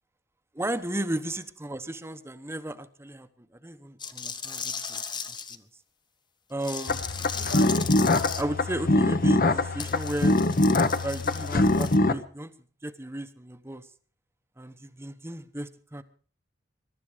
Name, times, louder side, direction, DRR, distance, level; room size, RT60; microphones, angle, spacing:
voice 1, 0.5-3.3 3.6-5.7 6.5-7.0 8.4-10.4 11.0-12.5 12.8-13.9 14.6-16.0, right 1 dB, 15° right, 12 dB, 0.9 m, -34 dB
sound 1, 4.0-5.6 6.6-8.4 9.8-12.0, left 6 dB, 25° left, 0.9 m, -36 dB
sound 2, 6.9-12.1, left 2 dB, 50° left, 1.0 m, -23 dB
22.5 x 12.0 x 5.0 m, 0.42 s
head